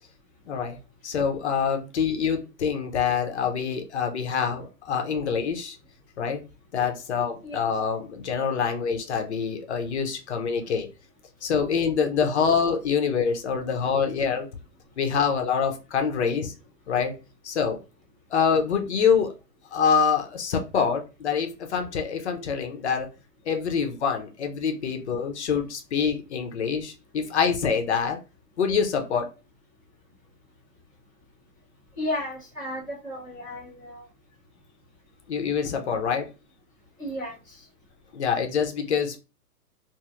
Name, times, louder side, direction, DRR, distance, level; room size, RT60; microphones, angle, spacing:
voice 1, 0.5-0.8 1.0-5.8 6.2-6.4 6.7-10.9 11.4-14.5 15.0-16.5 16.9-17.2 17.4-17.8 18.3-19.3 19.7-23.1 23.5-28.2 28.6-29.3 35.3-36.3 38.1-39.2, left 6 dB, 45° left, 5 dB, 0.6 m, -25 dB
voice 2, 32.0-34.0 37.0-37.6, left 1 dB, 15° right, -10 dB, 0.4 m, -34 dB
2.9 x 2.6 x 2.4 m, 0.29 s
hypercardioid pair, 145°, 49 cm